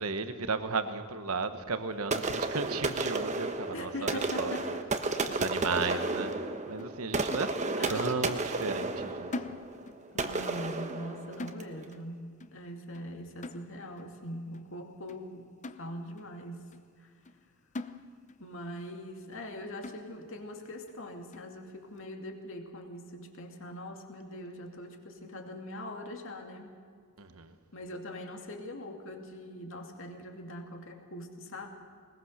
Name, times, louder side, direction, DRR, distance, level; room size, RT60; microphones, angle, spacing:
voice 1, 0.0-4.5 5.3-6.3 6.7-7.5 7.9-9.6 27.2-27.5, right 4 dB, 80° right, 9 dB, 1.2 m, -34 dB
sound 1, 2.1-11.8, right 3 dB, 30° right, 1.1 m, -33 dB
voice 2, 3.7-4.9 5.9-6.1 7.8-8.2 10.1-12.3 12.5-15.5 15.8-16.6 17.0-17.1 18.4-26.7 27.7-31.7, left 1 dB, 60° left, 3 dB, 2.5 m, -42 dB
sound 2, 5.2-6.5 6.8-7.0 7.3-8.0 8.3-8.5 8.8-10.1 10.4-10.6 10.9-12.1 12.4-12.6 12.9-13.1 13.4-14.1 14.5-14.7 15.1-15.2 15.6-16.3 16.7-16.8 17.3-17.4 17.7-18.5 18.8-18.9 19.3-19.5 19.8-20.4 20.9-21.0 21.3-21.6, left 2 dB, 35° left, 0.7 m, -44 dB
21.0 x 20.5 x 6.6 m, 2.1 s
head